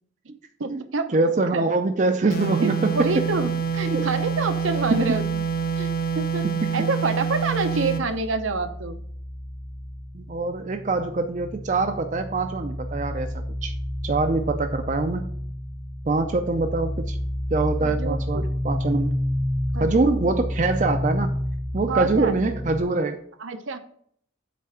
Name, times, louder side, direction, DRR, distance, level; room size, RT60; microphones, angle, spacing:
voice 1, 0.6-1.2 1.5-1.6 2.6-5.4 5.8-5.9 6.1-6.5 6.7-9.0 17.8-18.5 19.7-20.2 21.9-22.3 23.4-23.8, right 3 dB, 80° right, 8 dB, 0.8 m, -27 dB
voice 2, 1.1-3.1 3.9-4.1 4.9-5.2 6.4-6.5 10.1-13.7 14.0-15.3 16.1-17.2 17.5-19.2 19.8-21.3 21.7-23.2, right 3 dB, 40° right, 7 dB, 0.4 m, -24 dB
sound 1, 2.3-8.1, right 6 dB, 50° left, 0.5 m, -26 dB
sound 2, 3.1-6.7 7.0-22.8, left 1 dB, 20° left, 0.9 m, -31 dB
8.2 x 3.4 x 5.7 m, 0.63 s
head